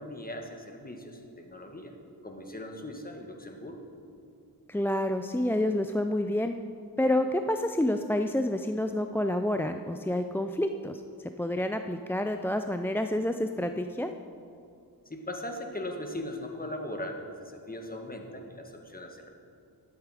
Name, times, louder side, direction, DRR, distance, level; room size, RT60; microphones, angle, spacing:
voice 1, 0.0-1.9 2.2-3.9 15.0-19.3, left 1 dB, 20° left, 3 dB, 1.6 m, -39 dB
voice 2, 4.7-6.5 7.0-11.0 11.4-14.1, left 1 dB, 5° left, 7 dB, 0.3 m, -28 dB
12.0 x 8.2 x 4.9 m, 2.5 s
cardioid pair, 55°, 40 cm